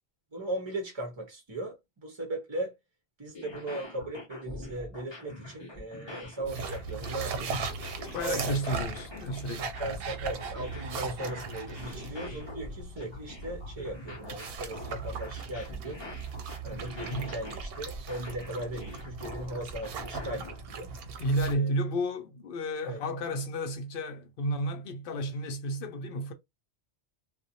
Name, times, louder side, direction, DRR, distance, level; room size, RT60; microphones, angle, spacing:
voice 1, 0.3-2.7 3.2-7.7 8.2-8.6 9.8-16.0 16.6-20.9 21.5-21.7 22.8-23.0, right 1 dB, 35° right, 0.5 m, -38 dB
sound 1, 3.3-20.6, left 1 dB, 30° left, 0.7 m, -45 dB
sound 2, 6.5-21.5, right 4 dB, 70° right, 0.7 m, -38 dB
voice 2, 8.1-9.8 17.0-17.3 21.2-26.3, equal, 60° left, 0.7 m, -32 dB
2.4 x 2.1 x 2.7 m
omnidirectional pair, 1.1 m